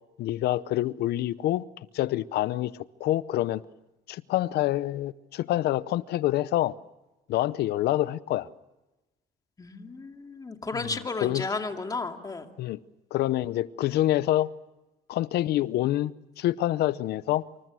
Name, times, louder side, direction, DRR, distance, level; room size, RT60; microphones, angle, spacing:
voice 1, 0.2-1.6 1.9-3.6 4.1-6.7 7.3-8.5 10.7-11.5 12.6-12.8 13.1-14.5 15.1-17.4, left 14 dB, 75° left, 0.8 m, -27 dB
voice 2, 9.6-12.4, left 3 dB, 20° left, 2.5 m, -33 dB
28.0 x 27.0 x 6.2 m
cardioid pair, 110°, 17 cm